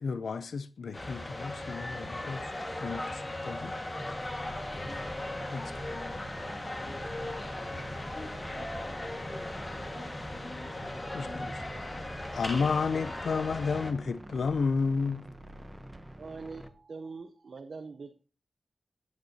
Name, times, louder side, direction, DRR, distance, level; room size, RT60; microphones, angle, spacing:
voice 1, 0.0-2.5 2.8-3.7 4.5-4.6 5.5-5.6 11.1-11.5 12.3-15.2, left 5 dB, 90° left, 0.4 m, -31 dB
sound 1, 0.9-13.9, left 1 dB, 25° left, 1.6 m, -38 dB
sound 2, 4.0-16.7, right 1 dB, 15° right, 0.9 m, -47 dB
voice 2, 5.5-6.1 6.4-7.0 7.7-7.8 8.1-8.3 8.6-9.3 9.9-10.7 11.2-11.5, left 2 dB, 45° left, 3.1 m, -48 dB
voice 3, 16.2-18.2, right 4 dB, 70° right, 0.7 m, -43 dB
13.0 x 9.5 x 2.8 m
wide cardioid pair, 95°, 0 cm